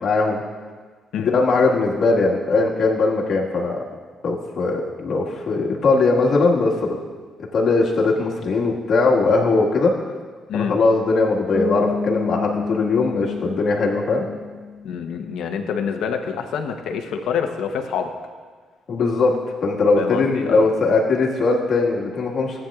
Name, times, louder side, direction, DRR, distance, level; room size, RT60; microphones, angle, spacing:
voice 1, 0.0-0.4 1.2-3.8 4.2-7.0 7.5-9.9 10.5-14.3 18.9-19.4 19.6-22.6, left 3 dB, 60° left, -3 dB, 1.8 m, -20 dB
Bass guitar, 11.5-15.3, left 4 dB, 15° left, 1.3 m, -29 dB
voice 2, 14.8-18.1 19.9-20.7, left 7 dB, 80° left, 5 dB, 0.9 m, -26 dB
15.0 x 9.0 x 2.4 m, 1.5 s
cardioid pair, 90°, 0 cm